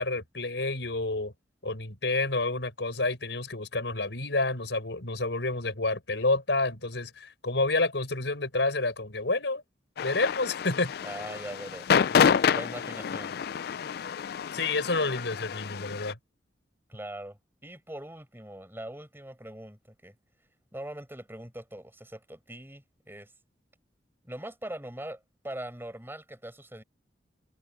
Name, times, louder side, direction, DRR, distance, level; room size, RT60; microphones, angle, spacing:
voice 1, 0.0-1.3 1.6-9.6 10.0-10.9 14.5-16.2, left 2 dB, 85° left, 4.5 m, -29 dB
sound 1, 10.0-16.1, left 7 dB, 60° left, 0.4 m, -28 dB
voice 2, 11.0-12.3 12.5-13.4 16.9-20.2 20.7-23.3 24.2-26.8, right 1 dB, 15° right, 7.5 m, -42 dB
head